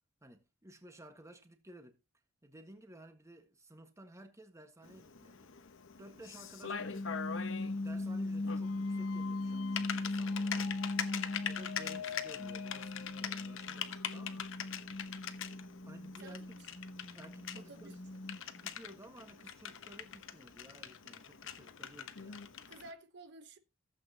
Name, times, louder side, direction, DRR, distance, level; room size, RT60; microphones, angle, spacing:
voice 1, 0.2-2.0 2.4-5.5 6.0-7.2 7.6-10.8 11.4-14.5 15.9-16.6 17.1-18.0 18.6-22.5, right 1 dB, 15° right, 1.5 m, -55 dB
Typing, 4.8-22.9, left 8 dB, 65° left, 1.0 m, -43 dB
sound 1, 6.8-12.0 12.4-18.6, left 2 dB, 30° left, 0.6 m, -39 dB
sound 2, 8.6-14.5, left 8 dB, 85° left, 0.7 m, -49 dB
voice 2, 16.2-16.7 17.5-17.9 22.7-23.6, right 2 dB, 55° right, 1.0 m, -53 dB
15.0 x 8.3 x 2.9 m
head